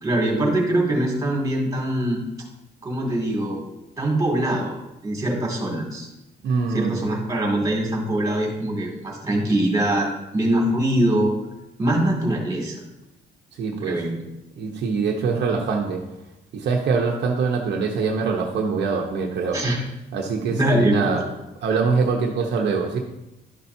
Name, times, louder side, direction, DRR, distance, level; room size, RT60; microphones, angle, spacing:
voice 1, 0.0-2.2 2.8-3.6 4.0-4.7 5.0-6.1 6.7-10.1 10.3-11.3 11.8-12.7 13.8-14.2 19.5-19.8 20.5-21.1, right 1 dB, 20° right, -1 dB, 2.3 m, -22 dB
voice 2, 6.4-7.1 13.5-14.0 14.6-16.0 16.5-19.6 20.1-21.2 21.6-23.0, right 5 dB, 60° right, 0 dB, 1.0 m, -23 dB
11.5 x 5.7 x 2.7 m, 0.92 s
cardioid pair, 130°, 19 cm